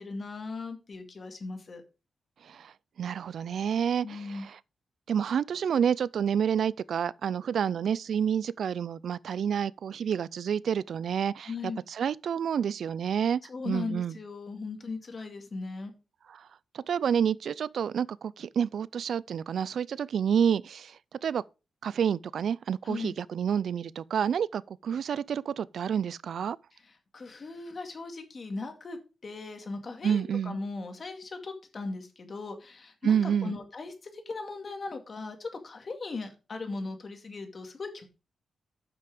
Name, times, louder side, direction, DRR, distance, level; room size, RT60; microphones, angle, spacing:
voice 1, 0.0-1.8 4.0-4.5 11.5-11.8 13.5-15.9 22.8-23.2 26.8-38.1, left 3 dB, 40° left, 2.1 m, -38 dB
voice 2, 3.0-4.6 5.1-11.5 11.9-14.2 16.3-16.5 16.7-21.4 21.8-26.6 30.0-30.6 33.0-33.5, right 8 dB, 70° right, 0.3 m, -29 dB
9.1 x 6.1 x 5.0 m
wide cardioid pair, 115°, 0 cm